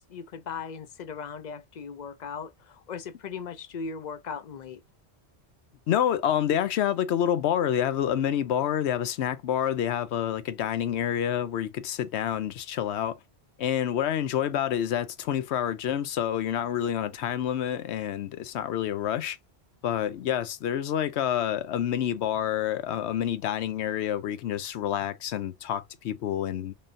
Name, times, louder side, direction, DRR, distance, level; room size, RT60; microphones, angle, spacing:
voice 1, 0.1-4.8, left 6 dB, 50° left, 0.6 m, -38 dB
voice 2, 5.9-13.2 13.6-19.4 19.8-26.7, left 10 dB, 85° left, 0.9 m, -28 dB
3.8 x 3.7 x 2.5 m
omnidirectional pair, 1.1 m